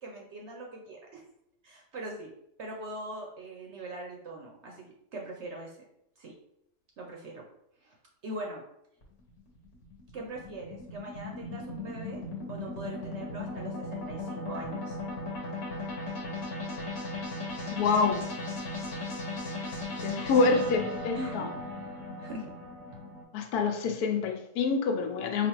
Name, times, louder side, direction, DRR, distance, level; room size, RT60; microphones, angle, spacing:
voice 1, 0.0-1.2 1.6-2.3 2.6-5.8 6.2-6.3 7.0-7.4 7.8-8.0 8.2-8.6 10.1-12.2 12.5-15.0 21.1-22.5, right 1 dB, 60° right, 0 dB, 0.8 m, -41 dB
sound 1, 9.0-23.2, left 2 dB, 55° left, 1.1 m, -37 dB
voice 2, 17.7-18.3 20.0-21.5 23.3-25.5, left 4 dB, 80° left, 5 dB, 1.1 m, -27 dB
4.9 x 2.5 x 3.0 m, 0.77 s
omnidirectional pair, 1.6 m